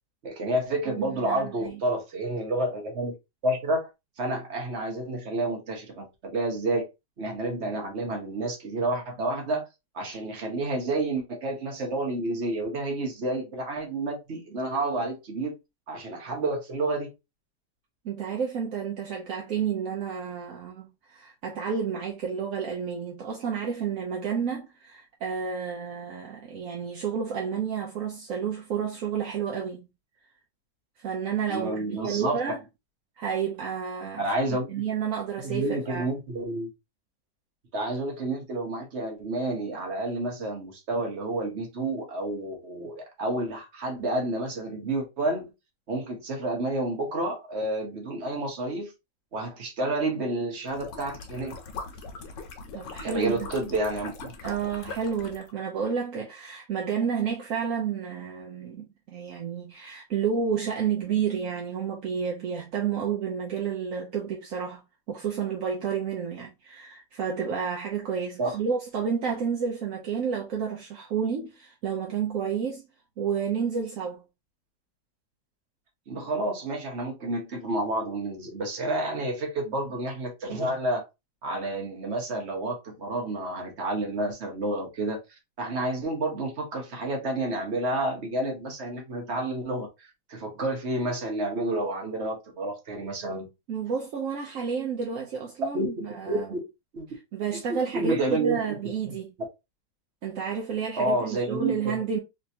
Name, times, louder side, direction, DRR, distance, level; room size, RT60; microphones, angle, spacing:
voice 1, 0.2-3.1 3.4-3.9 4.2-6.9 7.2-9.7 9.9-15.6 15.9-17.1 31.5-32.4 34.2-34.8 35.4-36.7 37.7-45.5 45.9-48.9 49.3-51.5 53.0-54.3 68.4-68.5 76.1-81.0 81.4-85.2 85.6-93.5 95.7-95.9 96.3-96.6 96.9-97.1 97.9-98.6 100.9-102.0, right 2 dB, 40° right, 1.3 m, -30 dB
voice 2, 1.0-1.7 18.0-29.9 31.0-32.6 33.2-34.2 34.5-36.1 52.7-53.5 54.4-64.8 65.1-72.8 73.2-74.2 93.7-96.5 97.3-99.3 100.2-102.2, right 7 dB, 60° right, 0.9 m, -30 dB
sound 1, 50.7-55.5, left 4 dB, 80° left, 1.5 m, -41 dB
3.4 x 3.0 x 2.7 m
omnidirectional pair, 1.9 m